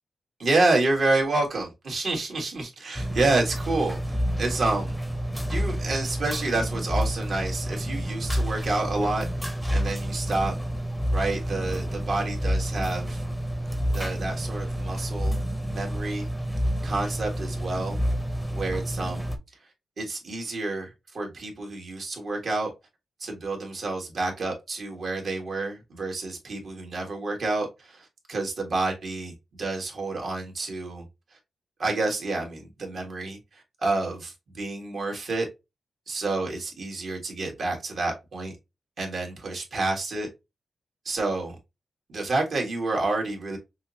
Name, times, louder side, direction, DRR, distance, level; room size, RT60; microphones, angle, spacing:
voice 1, 0.4-5.0 5.5-10.5 11.1-13.2 13.9-16.3 16.8-18.0 18.5-19.3 20.0-22.7 23.2-31.0 31.8-35.5 36.1-38.5 39.0-40.3 41.0-41.5 42.1-43.6, right 2 dB, 60° right, 1.5 m, -29 dB
sound 1, 2.9-19.4, equal, ahead, 0.7 m, -29 dB
5.4 x 2.0 x 2.6 m
cardioid pair, 95°, 0 cm